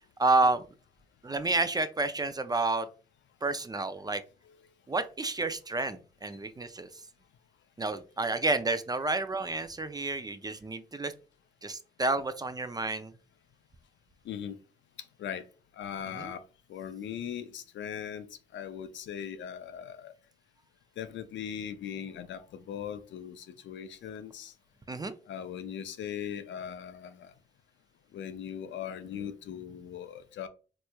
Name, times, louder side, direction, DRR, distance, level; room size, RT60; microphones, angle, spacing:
voice 1, 0.2-0.6 1.2-2.9 3.4-4.2 4.9-6.9 7.8-11.1 11.6-13.1 16.2-16.3 24.9-25.1, right 3 dB, 20° right, 0.4 m, -30 dB
voice 2, 15.8-16.4 16.7-18.3 18.5-20.1 21.0-24.5 25.3-27.3 28.1-30.5, left 8 dB, 70° left, 0.4 m, -39 dB
3.2 x 3.0 x 2.2 m
supercardioid pair, 55°, 20 cm